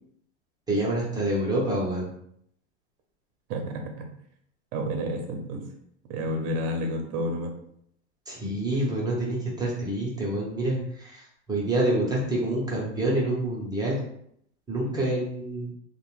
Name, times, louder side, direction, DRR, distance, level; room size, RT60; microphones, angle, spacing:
voice 1, 0.7-2.1 8.3-14.0 14.7-15.7, right 1 dB, 10° right, -5 dB, 0.7 m, -27 dB
voice 2, 3.5-3.9 4.7-5.6 6.1-7.5, equal, 45° right, 3 dB, 0.7 m, -30 dB
2.5 x 2.1 x 3.0 m, 0.70 s
hypercardioid pair, 115°, 36 cm